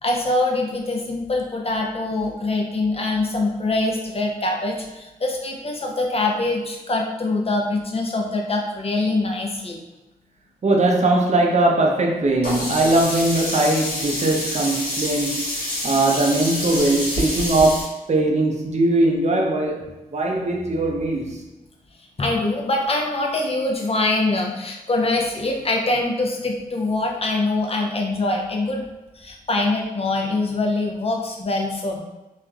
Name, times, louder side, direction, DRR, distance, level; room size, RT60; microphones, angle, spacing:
voice 1, 0.0-9.8 22.2-28.8 29.2-32.0, left 2 dB, 40° left, 0.6 m, -24 dB
voice 2, 10.6-15.5 15.8-21.4, right 2 dB, 45° right, 0.6 m, -20 dB
Sink (filling or washing), 12.4-17.8, left 1 dB, 80° left, 1.2 m, -27 dB
3.1 x 2.4 x 2.3 m
supercardioid pair, 40°, 16 cm